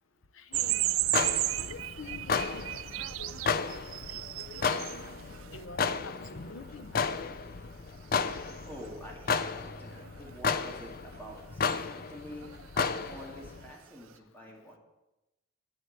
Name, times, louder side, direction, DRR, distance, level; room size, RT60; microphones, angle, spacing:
voice 1, 0.5-0.8 1.6-2.8 3.2-3.5 4.4-4.6 5.5-7.3, left 3 dB, 80° left, 9 dB, 0.8 m, -46 dB
sound 1, 0.5-13.7, left 5 dB, 45° left, 0.5 m, -34 dB
sound 2, 0.5-5.7 6.2-6.3 8.3-8.5 8.8-8.9 9.9-10.4 11.7-11.8 12.4-12.7 12.9-13.2, right 17 dB, 85° right, 0.3 m, -34 dB
voice 2, 8.6-14.8, equal, 10° left, -2 dB, 2.2 m, -47 dB
9.1 x 8.0 x 7.2 m, 0.99 s
head